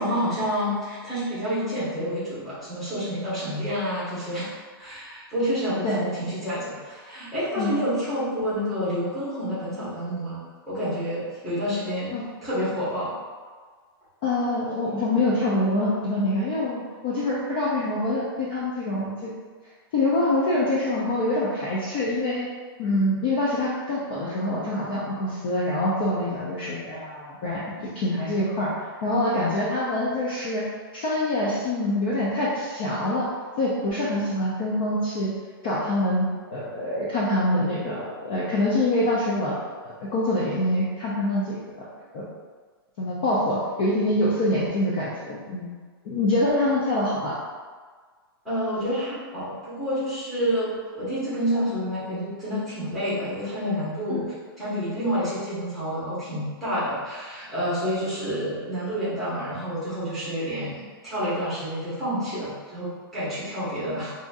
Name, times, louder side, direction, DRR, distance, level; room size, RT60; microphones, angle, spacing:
voice 1, 0.0-4.5 4.8-13.2 48.4-54.2 54.6-64.1, equal, ahead, -12 dB, 1.0 m, -29 dB
voice 2, 14.2-19.3 19.9-22.5 22.8-27.6 27.9-28.7 29.0-30.6 30.9-33.3 33.6-35.3 35.6-39.6 39.8-42.3 43.0-45.7 46.0-47.3 54.1-54.2, left 1 dB, 25° left, -7 dB, 0.4 m, -25 dB
5.0 x 2.6 x 2.3 m, 1.5 s
hypercardioid pair, 180°, 13 cm